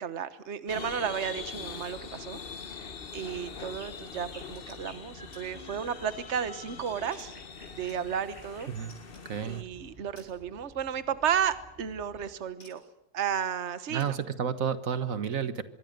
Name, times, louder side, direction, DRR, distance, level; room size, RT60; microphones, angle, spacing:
voice 1, 0.0-2.4 2.8-7.3 7.7-8.7 9.4-12.8 13.1-14.2, right 8 dB, 60° right, 13 dB, 1.4 m, -33 dB
sound 1, 0.7-9.6, left 6 dB, 45° left, 1.2 m, -43 dB
sound 2, 1.6-12.4, equal, 25° right, 8.2 m, -53 dB
sound 3, 4.5-4.8 5.3-5.5 5.9-6.4 7.1-8.5 8.9-9.4 10.2-10.4 11.7-11.8 12.6-12.9 14.0-14.2, left 2 dB, 85° left, 5.6 m, -57 dB
voice 2, 9.3-9.6 13.9-15.6, right 7 dB, 80° right, 12 dB, 1.8 m, -31 dB
25.0 x 23.0 x 6.7 m, 0.83 s
omnidirectional pair, 1.4 m